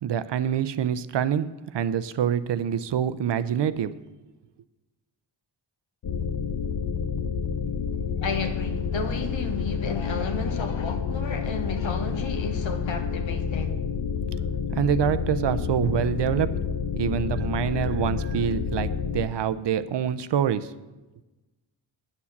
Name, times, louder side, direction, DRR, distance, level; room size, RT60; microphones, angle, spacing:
voice 1, 0.0-1.5 1.7-3.9 14.8-16.5 17.0-20.7, right 9 dB, 60° right, 0.6 m, -26 dB
sound 1, 6.0-19.3, left 6 dB, 50° left, 0.8 m, -29 dB
voice 2, 8.2-13.8, left 4 dB, 70° left, 1.4 m, -32 dB
9.7 x 7.2 x 7.2 m
cardioid pair, 100°, 47 cm